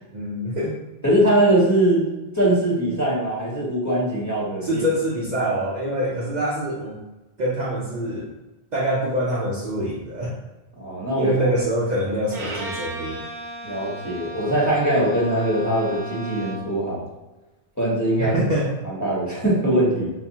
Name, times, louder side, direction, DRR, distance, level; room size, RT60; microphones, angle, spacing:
voice 1, 0.1-0.8 4.6-7.0 7.4-8.3 8.7-10.4 11.2-13.2 18.2-18.8, equal, 55° right, -4 dB, 0.6 m, -25 dB
voice 2, 1.0-2.0 2.3-4.8 10.8-11.3 13.6-17.0 17.8-18.4 18.8-20.1, right 1 dB, 20° left, -7 dB, 1.0 m, -21 dB
Bowed string instrument, 12.3-16.8, right 1 dB, 80° right, 1.0 m, -35 dB
4.3 x 2.3 x 2.7 m, 1.1 s
omnidirectional pair, 1.0 m